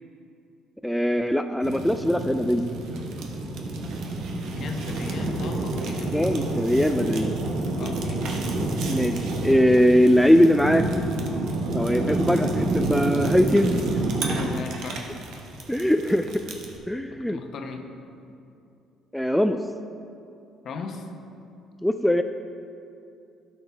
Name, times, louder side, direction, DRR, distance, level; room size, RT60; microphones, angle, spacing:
voice 1, 0.8-2.6 6.1-7.3 8.9-10.8 11.7-14.0 15.7-16.4 16.9-17.4 19.1-19.6 21.8-22.2, equal, 5° left, 7 dB, 0.3 m, -21 dB
Fire, 1.6-16.8, right 2 dB, 70° right, 1.1 m, -28 dB
voice 2, 4.6-6.6 7.8-8.5 14.3-15.1 17.1-17.9 20.6-21.1, left 4 dB, 55° left, 5 dB, 0.9 m, -38 dB
12.0 x 6.7 x 3.4 m, 2.6 s
supercardioid pair, 85°, 0 cm